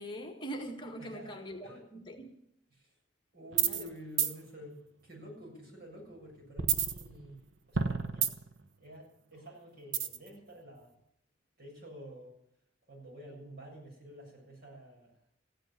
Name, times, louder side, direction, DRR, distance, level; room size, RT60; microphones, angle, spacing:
voice 1, 0.0-2.3 3.6-3.9, right 1 dB, 25° left, 2 dB, 1.7 m, -42 dB
voice 2, 1.0-1.9 2.7-3.0 3.3-7.4 7.7-8.4 8.8-10.9 11.6-12.3 12.9-15.2, right 1 dB, 50° right, -3 dB, 7.2 m, -50 dB
sound 1, 3.5-3.9 4.2-4.3 6.6-7.4 7.8-8.6 9.9-10.3, right 7 dB, 75° right, 1.0 m, -29 dB
15.5 x 9.4 x 9.7 m, 0.73 s
head